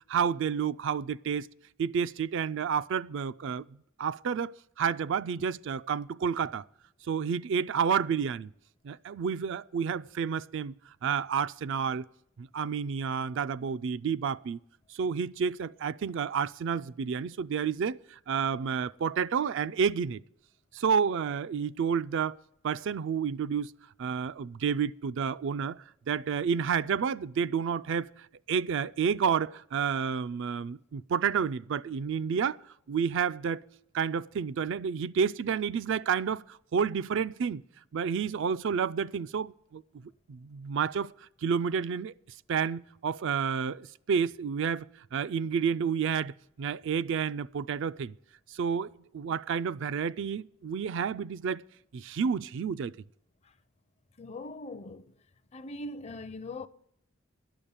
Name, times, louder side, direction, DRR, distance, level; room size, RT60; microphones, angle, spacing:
voice 1, 0.1-1.5 1.8-3.7 4.0-6.6 7.1-8.5 8.8-10.7 11.0-12.1 12.4-14.6 14.9-20.2 20.7-22.4 22.6-23.7 24.0-25.8 26.1-28.1 28.5-32.6 32.9-33.6 33.9-37.6 37.9-39.8 40.3-41.1 41.4-42.1 42.5-48.1 48.5-51.6 51.9-52.9, right 6 dB, 65° right, 0.4 m, -30 dB
voice 2, 54.2-55.1 55.5-56.7, left 2 dB, 30° left, 0.5 m, -41 dB
11.5 x 6.9 x 8.8 m
head